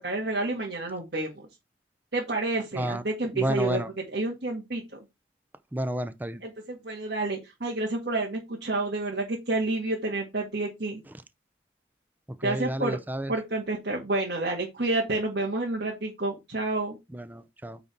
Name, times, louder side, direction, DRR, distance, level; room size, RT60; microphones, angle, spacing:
voice 1, 0.0-1.5 2.1-3.8 4.1-5.0 6.4-11.0 12.4-13.0 13.3-17.0, right 2 dB, 60° right, 1.9 m, -29 dB
voice 2, 3.3-3.9 5.7-6.4 12.4-13.3 17.1-17.8, right 1 dB, 10° right, 0.5 m, -31 dB
8.9 x 4.0 x 4.4 m
head